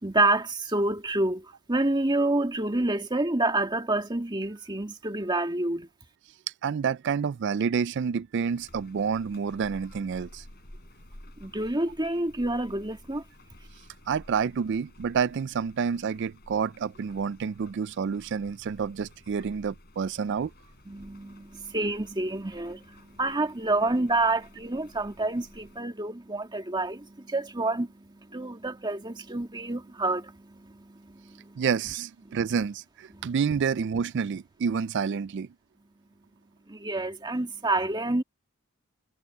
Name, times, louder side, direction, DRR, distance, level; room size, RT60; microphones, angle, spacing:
voice 1, 0.0-5.9 11.4-13.2 20.9-31.6 32.3-32.4 33.1-33.4 36.7-38.2, right 2 dB, 20° right, 1.8 m, -28 dB
voice 2, 6.6-10.4 14.1-20.5 31.6-35.5, right 6 dB, 50° right, 0.3 m, -29 dB
sound 1, 8.4-25.8, left 1 dB, 45° left, 4.6 m, -52 dB
head